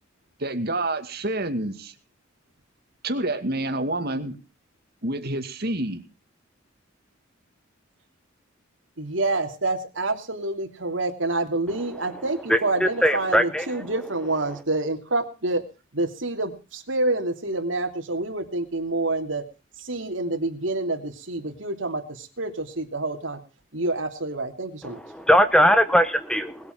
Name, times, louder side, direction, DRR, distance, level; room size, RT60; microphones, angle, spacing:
voice 1, 0.4-1.9 3.0-4.4 5.0-6.0, right 2 dB, 50° right, 7 dB, 2.3 m, -28 dB
voice 2, 9.0-15.6 15.9-19.4 19.9-22.0 22.4-23.4 23.7-25.0, right 2 dB, 75° right, 5 dB, 3.0 m, -27 dB
voice 3, 12.5-13.9 24.8-26.6, equal, 5° left, 11 dB, 1.0 m, -20 dB
20.5 x 8.8 x 6.1 m, 0.34 s
head